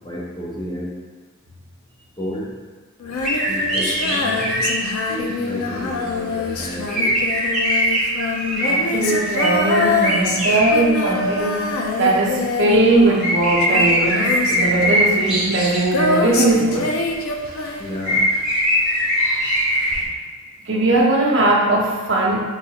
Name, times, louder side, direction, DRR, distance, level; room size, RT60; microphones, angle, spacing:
voice 1, 0.0-0.9 2.2-2.5 3.5-4.7 5.1-7.1 17.8-18.2, equal, 20° left, -4 dB, 0.5 m, -31 dB
Female singing, 3.0-18.4 19.9-20.0, left 3 dB, 75° left, 0.4 m, -25 dB
sound 1, 3.1-4.8 6.7-11.0 12.9-13.0 13.2-16.0 17.6-17.7 18.0-20.0, equal, ahead, 0.9 m, -21 dB
voice 2, 8.6-11.7 12.0-16.9 20.7-22.4, right 2 dB, 55° right, -3 dB, 0.6 m, -19 dB
5.5 x 2.3 x 2.8 m, 1.4 s
head